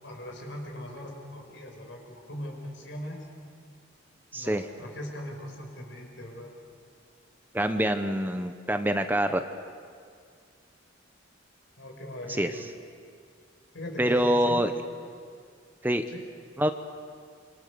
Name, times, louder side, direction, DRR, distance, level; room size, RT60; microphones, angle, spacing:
voice 1, 0.0-3.2 4.3-6.5 11.8-12.7 13.7-14.6 16.1-16.2, left 1 dB, 70° left, 1 dB, 6.3 m, -40 dB
voice 2, 4.3-4.7 7.5-9.4 12.3-12.5 14.0-14.7 15.8-16.0 16.6-16.7, equal, 10° right, 7 dB, 0.9 m, -25 dB
28.0 x 26.0 x 6.8 m, 2.1 s
head